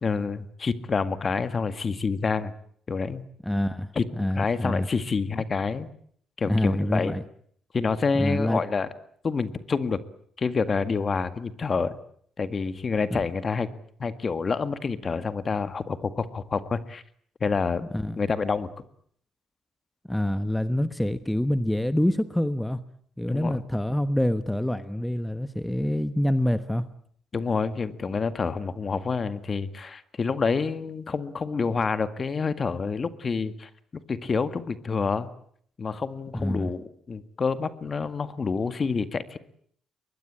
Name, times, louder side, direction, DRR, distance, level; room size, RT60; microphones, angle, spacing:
voice 1, 0.0-2.5 2.9-3.2 4.0-5.9 6.4-7.1 7.7-8.9 9.2-10.0 10.4-12.0 12.4-13.7 14.0-17.0 17.4-17.8 18.2-18.7 23.3-23.6 27.3-33.7 34.1-35.3 35.8-39.4, left 5 dB, 40° left, 12 dB, 1.9 m, -28 dB
voice 2, 3.4-4.9 6.4-7.2 8.2-8.6 13.1-13.2 17.9-18.2 20.1-22.8 23.2-26.8 36.3-36.7, left 1 dB, 5° left, 12 dB, 1.2 m, -26 dB
23.5 x 21.0 x 8.8 m, 0.63 s
cardioid pair, 90°, 0 cm